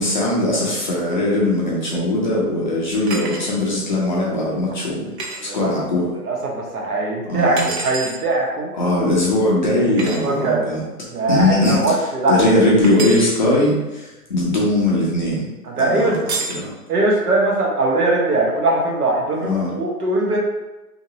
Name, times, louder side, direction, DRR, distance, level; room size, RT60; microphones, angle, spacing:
voice 1, 0.0-6.1 7.3-7.7 8.7-10.8 11.3-15.5 15.8-16.7 19.4-19.7, left 1 dB, 30° left, -5 dB, 0.5 m, -20 dB
sound 1, 3.1-3.6 5.2-5.4 7.6-8.2 10.0-10.2 12.8-13.4 16.3-16.6, right 3 dB, 45° right, 0.5 m, -28 dB
voice 2, 6.2-8.7 9.7-10.6 11.1-12.4 15.8-16.2 16.9-20.4, right 2 dB, 70° right, -2 dB, 1.1 m, -20 dB
2.8 x 2.8 x 2.7 m, 1.0 s
hypercardioid pair, 150°, 47 cm